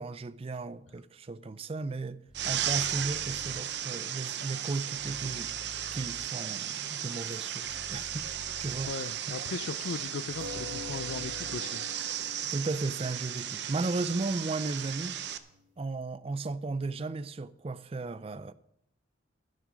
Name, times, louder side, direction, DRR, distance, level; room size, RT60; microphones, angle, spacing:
voice 1, 0.0-5.5 5.9-8.3 8.6-8.9 12.5-15.2 15.8-18.5, right 3 dB, 30° right, 0.4 m, -35 dB
sound 1, 2.3-3.6 4.9-6.3 7.6-8.9 10.3-11.6, equal, 5° right, 0.9 m, -49 dB
sound 2, 2.3-15.4, right 10 dB, 60° right, 0.7 m, -35 dB
sound 3, 2.9-6.8 7.1-7.2 10.4-15.6, left 4 dB, 75° right, 1.0 m, -49 dB
voice 2, 8.8-11.8, left 5 dB, 70° left, 0.4 m, -38 dB
12.0 x 9.3 x 6.2 m
head